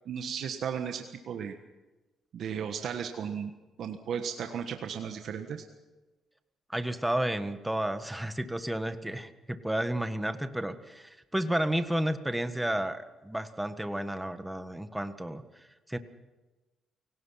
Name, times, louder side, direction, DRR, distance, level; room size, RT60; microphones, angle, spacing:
voice 1, 0.0-1.6 2.3-3.5 3.8-5.6, right 7 dB, 65° right, 5 dB, 1.5 m, -35 dB
voice 2, 6.7-16.0, right 1 dB, 5° right, 9 dB, 1.5 m, -32 dB
29.5 x 18.0 x 5.8 m, 1.1 s
cardioid pair, 90°, 0 cm